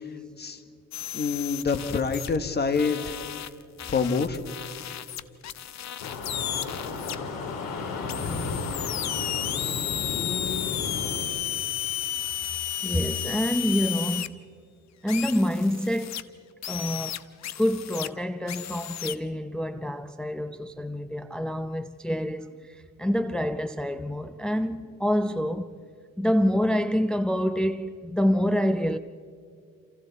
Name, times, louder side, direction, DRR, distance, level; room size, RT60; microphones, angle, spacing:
sound 1, 0.9-2.4 2.7-7.2 8.1-14.3 15.1-16.2 16.6-18.1 18.5-19.2, left 11 dB, 60° left, 0.8 m, -33 dB
voice 1, 1.1-3.1 3.9-4.4 9.6-9.8 10.1-10.8, left 5 dB, 35° left, 1.5 m, -27 dB
sound 2, 6.0-11.2, left 4 dB, 85° left, 3.6 m, -33 dB
voice 2, 12.8-14.4 15.0-16.3 16.7-17.2 17.6-25.8 26.2-29.0, equal, 5° left, 0.5 m, -27 dB
28.5 x 27.5 x 4.1 m
cardioid pair, 125°, 31 cm